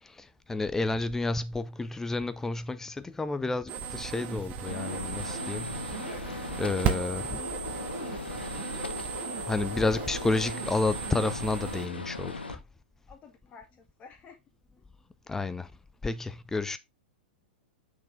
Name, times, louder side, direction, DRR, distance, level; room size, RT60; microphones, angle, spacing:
voice 1, 0.0-6.2 6.6-7.4 9.5-12.6 15.3-15.7 16.0-16.8, left 3 dB, 10° left, 0.6 m, -31 dB
sound 1, 3.7-11.9, right 8 dB, 35° right, 1.6 m, -36 dB
Gunshot gunfire, 4.7-12.5, left 3 dB, 80° left, 1.1 m, -38 dB
voice 2, 13.1-14.4, left 5 dB, 25° left, 2.3 m, -52 dB
6.3 x 5.7 x 3.5 m
figure-of-eight pair, 105°, 5 cm